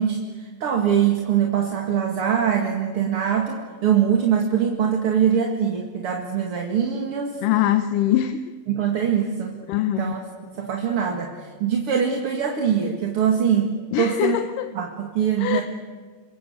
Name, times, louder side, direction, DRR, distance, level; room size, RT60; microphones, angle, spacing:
voice 1, 0.0-7.4 8.7-9.6 9.9-10.3 10.5-14.4 14.7-15.6, right 8 dB, 45° right, 2 dB, 2.5 m, -23 dB
voice 2, 7.4-8.4 9.7-10.2 13.9-14.7 15.4-15.6, left 12 dB, 75° left, 9 dB, 2.4 m, -22 dB
28.0 x 24.5 x 7.9 m, 1.5 s
omnidirectional pair, 4.0 m